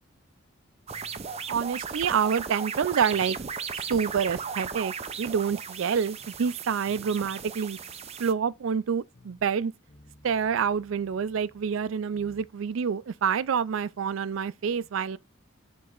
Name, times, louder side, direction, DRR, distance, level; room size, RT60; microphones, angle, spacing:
sound 1, 0.9-3.6 3.9-5.9 6.2-9.6 9.9-12.5, left 1 dB, 55° left, 1.8 m, -58 dB
sound 2, 0.9-8.3, right 6 dB, 35° right, 0.5 m, -36 dB
voice 1, 1.5-3.4 3.8-7.8 8.2-9.7 10.2-15.2, right 7 dB, 85° right, 0.4 m, -27 dB
6.7 x 4.0 x 3.8 m
head